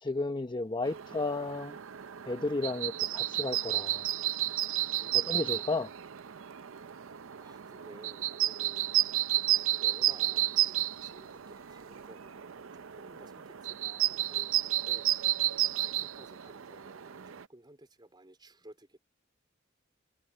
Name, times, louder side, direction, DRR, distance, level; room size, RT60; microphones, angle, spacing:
voice 1, 0.0-1.8 2.3-4.1 5.1-5.9, left 2 dB, 25° left, 0.8 m, -33 dB
sound 1, 0.9-17.4, right 14 dB, 85° right, 0.6 m, -32 dB
voice 2, 5.0-6.0 6.9-8.9 9.8-15.1 15.7-19.0, right 1 dB, 25° right, 4.0 m, -55 dB
head